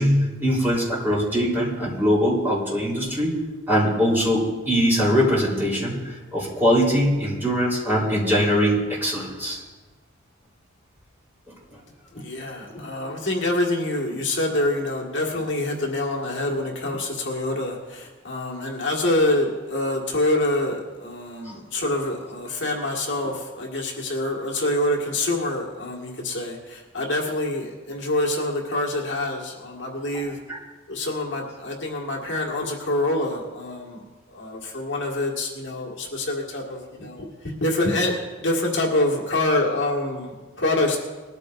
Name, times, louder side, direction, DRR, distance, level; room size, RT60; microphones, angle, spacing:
voice 1, 0.0-3.3 3.7-9.6 30.5-30.6, equal, 10° right, -6 dB, 3.7 m, -22 dB
voice 2, 12.1-30.4 30.9-34.0 34.3-37.3 37.6-41.0, left 1 dB, 55° left, -1 dB, 1.8 m, -26 dB
20.5 x 13.5 x 2.6 m, 1.3 s
head